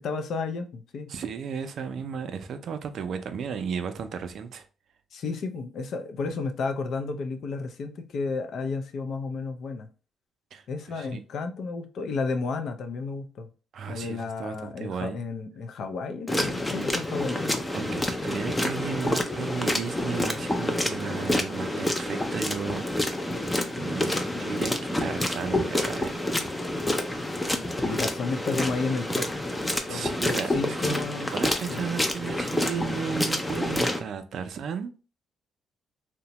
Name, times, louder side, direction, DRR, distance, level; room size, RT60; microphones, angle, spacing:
voice 1, 0.0-1.1 5.1-9.9 10.7-13.5 13.9-17.6 27.8-29.2 29.9-31.3 31.7-31.8, left 4 dB, 65° left, 0.4 m, -32 dB
voice 2, 1.1-4.6 10.5-10.6 10.9-11.2 13.7-15.2 17.7-23.1 23.8-26.1 26.4-26.7 29.9-30.9 31.3-34.9, right 6 dB, 65° right, 0.4 m, -34 dB
sound 1, 16.3-34.0, left 1 dB, 10° left, 0.4 m, -28 dB
2.9 x 2.1 x 2.8 m
cardioid pair, 90°, 0 cm